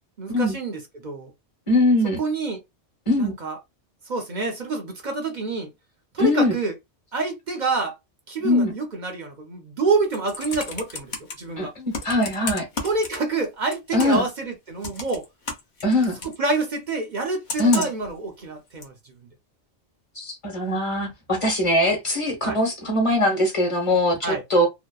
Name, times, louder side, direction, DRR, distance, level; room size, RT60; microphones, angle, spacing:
voice 1, 0.2-1.3 2.2-2.6 3.2-3.6 4.1-5.7 6.1-6.7 7.1-7.9 8.3-11.7 12.8-15.2 16.2-19.1 22.4-22.6 24.2-24.4, right 3 dB, 50° right, 0.6 m, -27 dB
voice 2, 1.7-2.2 3.1-3.3 6.2-6.5 8.4-8.7 11.6-12.7 13.9-14.2 15.8-16.2 17.6-17.9 20.1-24.7, left 1 dB, 30° left, 1.0 m, -21 dB
Computer keyboard, 9.9-11.3 11.9-13.5 13.7-14.3 14.8-16.4 17.5-18.1 18.8-18.9, left 3 dB, 50° left, 0.6 m, -33 dB
2.8 x 2.0 x 2.2 m
omnidirectional pair, 1.2 m